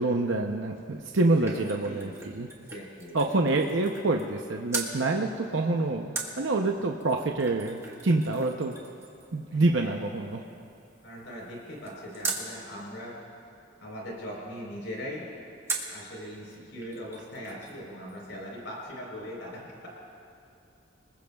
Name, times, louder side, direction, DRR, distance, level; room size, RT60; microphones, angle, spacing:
voice 1, 0.0-2.5 3.1-8.7 9.3-10.4, right 2 dB, 75° right, 2 dB, 0.7 m, -27 dB
sound 1, 0.8-4.4 4.7-5.0 6.2-12.5 15.7-16.0 16.5-16.6 16.8-17.8 18.1-18.2, right 3 dB, 15° right, 1.3 m, -40 dB
voice 2, 1.1-2.2 2.7-3.4 9.5-10.0 11.0-13.2 13.8-15.3 15.8-19.9, equal, 70° left, -3 dB, 4.0 m, -40 dB
27.5 x 20.0 x 2.4 m, 2.6 s
head